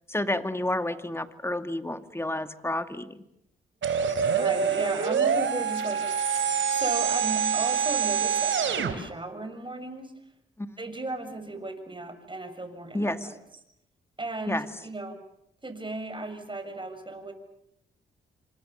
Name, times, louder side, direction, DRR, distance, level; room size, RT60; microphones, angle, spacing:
voice 1, 0.1-3.2 10.6-10.8 12.9-13.3 14.5-14.7, left 1 dB, 10° left, 9 dB, 2.3 m, -30 dB
sound 1, 3.8-8.9, right 7 dB, 65° right, 3.3 m, -26 dB
voice 2, 4.0-6.0 6.7-10.1 10.8-13.4 14.2-15.2 15.6-17.3, right 2 dB, 25° right, 8 dB, 6.5 m, -35 dB
29.0 x 25.5 x 6.8 m, 0.77 s
supercardioid pair, 60°, 21 cm